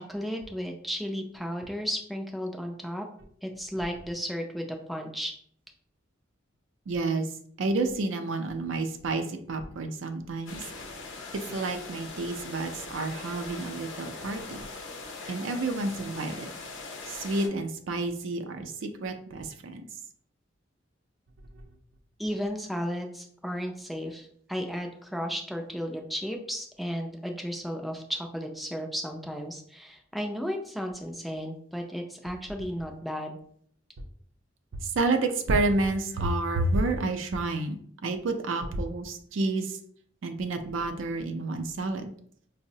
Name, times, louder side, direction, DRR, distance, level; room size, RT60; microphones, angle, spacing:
voice 1, 0.0-3.1 3.4-5.3 22.2-33.4, equal, ahead, 2 dB, 0.3 m, -34 dB
voice 2, 6.9-7.3 7.6-10.6 11.3-14.6 15.3-16.5 17.1-19.8 21.5-21.6 34.8-37.8 38.0-39.8 40.2-42.1, right 2 dB, 80° right, 7 dB, 0.4 m, -29 dB
sound 1, 10.5-17.5, left 3 dB, 70° left, 0.6 m, -41 dB
4.5 x 2.0 x 2.6 m, 0.62 s
head